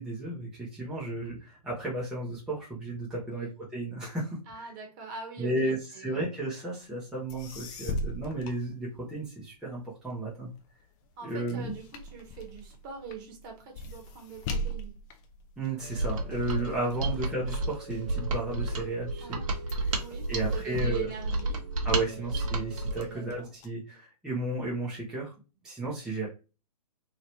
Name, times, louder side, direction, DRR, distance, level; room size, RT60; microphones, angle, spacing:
voice 1, 0.0-4.7 5.4-10.5 11.2-11.7 15.6-19.4 20.3-21.1 21.8-25.3 25.6-26.3, right 2 dB, 5° right, -7 dB, 0.8 m, -33 dB
voice 2, 4.4-6.3 11.2-14.9 16.7-17.2 19.2-19.5 20.0-21.6 22.0-22.4 23.1-23.5 26.2-26.3, right 6 dB, 30° right, 2 dB, 1.2 m, -43 dB
sound 1, 7.0-7.1 7.3-9.4 9.9-18.5 19.0-19.4 19.7-22.2 22.7-23.7, left 1 dB, 25° left, 0.5 m, -40 dB
sound 2, 15.8-23.4, right 3 dB, 75° right, 0.9 m, -46 dB
Mechanisms, 15.9-23.1, right 2 dB, 55° right, 1.0 m, -31 dB
3.0 x 2.8 x 2.8 m, 0.32 s
figure-of-eight pair, 130°, 21 cm